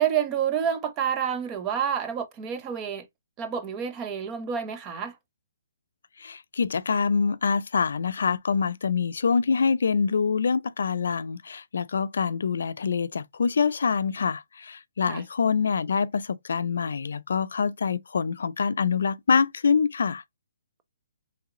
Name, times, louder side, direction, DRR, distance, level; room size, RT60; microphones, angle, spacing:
voice 1, 0.0-3.1 3.4-5.2 15.1-15.2, right 8 dB, 20° right, 0.5 m, -28 dB
voice 2, 6.2-20.2, left 5 dB, 75° left, 0.3 m, -25 dB
3.2 x 2.9 x 3.6 m
hypercardioid pair, 160°, 0 cm